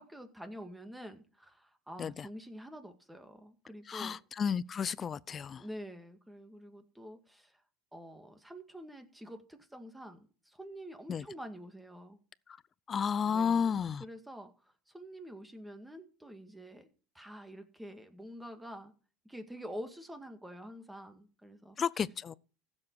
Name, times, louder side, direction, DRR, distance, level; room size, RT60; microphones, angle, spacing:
voice 1, 0.0-4.2 5.6-7.6 7.9-10.2 10.5-12.2 13.2-13.7 14.0-16.9 17.1-18.9 19.2-21.8, equal, 5° right, 2.0 m, -47 dB
voice 2, 3.9-5.6 11.1-11.2 12.9-14.0 21.8-22.3, left 7 dB, 30° left, 0.5 m, -32 dB
15.5 x 7.5 x 4.7 m
supercardioid pair, 125°, 0 cm